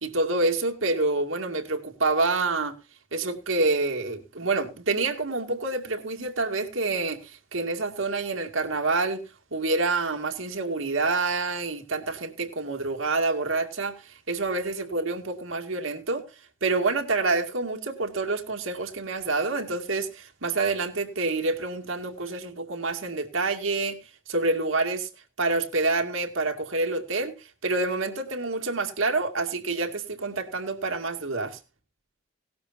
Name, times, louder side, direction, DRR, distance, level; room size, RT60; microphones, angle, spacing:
voice 1, 0.0-2.8 3.1-9.2 9.5-16.2 16.6-24.0 24.3-25.1 25.4-31.6, right 3 dB, 90° right, 2.3 m, -27 dB
18.0 x 12.0 x 2.7 m
head